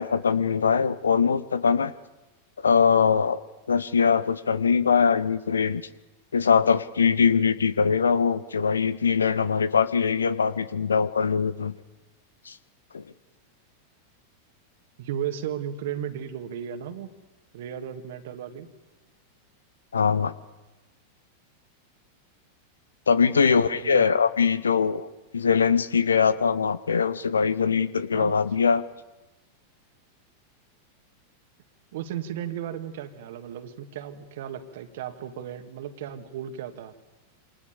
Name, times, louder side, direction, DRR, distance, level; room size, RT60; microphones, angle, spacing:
voice 1, 0.0-1.9 2.6-3.4 3.7-5.8 6.3-11.7 12.5-12.6 12.9-13.0 19.9-20.3 23.1-25.1 25.3-28.8, left 6 dB, 70° left, 17 dB, 1.1 m, -22 dB
voice 2, 15.0-17.1 17.5-18.7 23.2-24.1 28.1-28.4 31.9-36.9, right 9 dB, 55° right, 9 dB, 2.4 m, -35 dB
28.0 x 26.5 x 7.1 m, 1.1 s
figure-of-eight pair, 90°, 0 cm